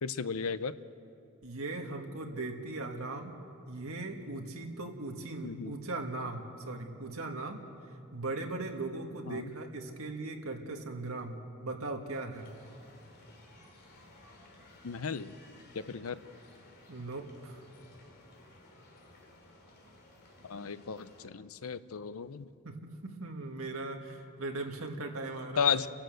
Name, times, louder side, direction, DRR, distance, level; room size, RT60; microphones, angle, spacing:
voice 1, 0.0-0.7 5.4-5.7 9.3-9.5 14.8-15.3 15.7-16.2 20.4-22.5 25.6-25.9, left 6 dB, 70° left, 14 dB, 0.6 m, -34 dB
voice 2, 1.4-3.3 3.7-7.6 8.1-12.5 16.9-17.6 22.7-22.8 23.0-25.7, right 2 dB, 70° right, 3 dB, 2.0 m, -39 dB
sound 1, 12.3-21.3, left 2 dB, 50° left, 3.1 m, -57 dB
29.5 x 11.5 x 7.9 m, 2.5 s
head